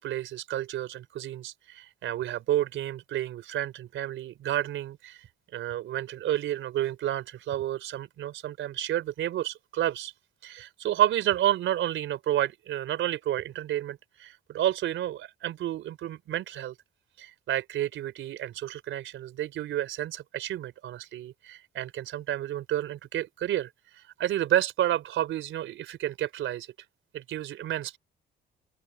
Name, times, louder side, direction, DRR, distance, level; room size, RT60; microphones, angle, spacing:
voice 1, 0.0-5.3 5.5-10.1 10.4-16.7 17.2-26.7 27.1-28.0, right 12 dB, 80° right, 4.3 m, -30 dB
cardioid pair, 90°, 20 cm